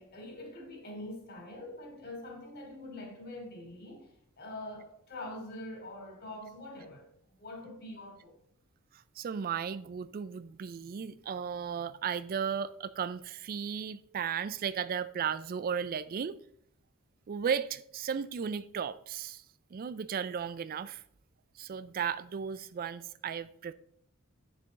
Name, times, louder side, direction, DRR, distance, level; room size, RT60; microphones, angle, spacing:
voice 1, 0.0-8.4, left 1 dB, 50° left, 2.9 m, -44 dB
voice 2, 8.9-16.4 17.3-19.4 19.7-21.0 21.6-23.7, right 7 dB, 45° right, 0.3 m, -35 dB
9.0 x 6.9 x 3.7 m
head